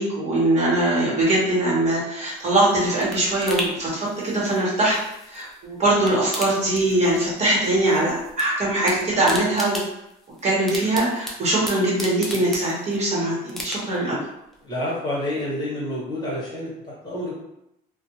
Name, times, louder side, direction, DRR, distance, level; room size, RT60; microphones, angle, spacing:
voice 1, 0.0-5.0 5.3-9.8 10.4-14.2, right 1 dB, 40° right, -6 dB, 1.0 m, -22 dB
sound 1, 2.3-5.6 5.9-7.4 7.6-8.5 8.7-13.1 13.5-14.1 14.5-14.6, left 1 dB, ahead, 0.4 m, -35 dB
voice 2, 14.6-17.4, left 1 dB, 25° left, -6 dB, 1.1 m, -29 dB
2.4 x 2.1 x 2.9 m, 0.83 s
cardioid pair, 110°, 17 cm